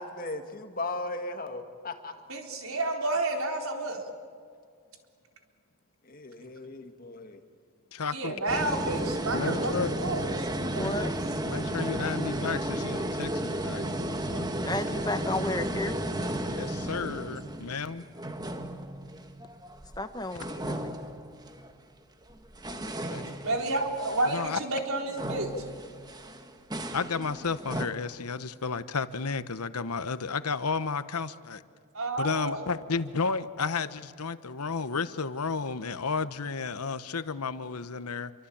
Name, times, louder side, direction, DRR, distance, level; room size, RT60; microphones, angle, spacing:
voice 1, 0.0-2.1 6.0-7.4, left 2 dB, 40° left, 6 dB, 1.9 m, -37 dB
voice 2, 2.3-4.0 8.1-11.1 23.4-25.5 31.9-32.7, right 2 dB, 70° right, 3 dB, 4.0 m, -30 dB
voice 3, 7.9-8.3 9.3-9.9 10.7-10.9 11.4-14.5 16.5-18.0 22.8-23.4 24.2-24.6 26.9-31.6 32.2-38.3, left 4 dB, 90° left, 13 dB, 1.0 m, -32 dB
sound 1, 8.5-20.0 20.3-21.7 22.3-27.9, right 1 dB, 20° right, 1.4 m, -34 dB
voice 4, 10.7-11.1 14.6-16.0 20.0-20.9, left 2 dB, 15° left, 9 dB, 1.1 m, -33 dB
28.0 x 24.5 x 8.7 m, 2.2 s
head